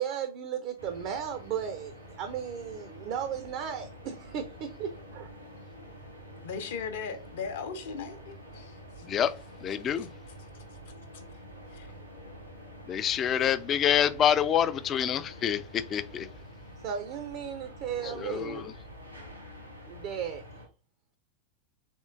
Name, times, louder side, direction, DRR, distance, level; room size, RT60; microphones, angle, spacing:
voice 1, 0.0-5.3 16.8-18.7 19.8-20.6, right 8 dB, 45° right, 0.5 m, -35 dB
sound 1, 0.8-20.7, equal, 85° right, 1.7 m, -47 dB
voice 2, 6.4-9.0 10.0-10.1 11.7-11.9, left 5 dB, 55° left, 0.7 m, -38 dB
voice 3, 9.6-10.1 12.9-16.3 18.2-18.6, left 9 dB, 30° left, 0.3 m, -26 dB
3.6 x 3.6 x 2.4 m
figure-of-eight pair, 90°, 0 cm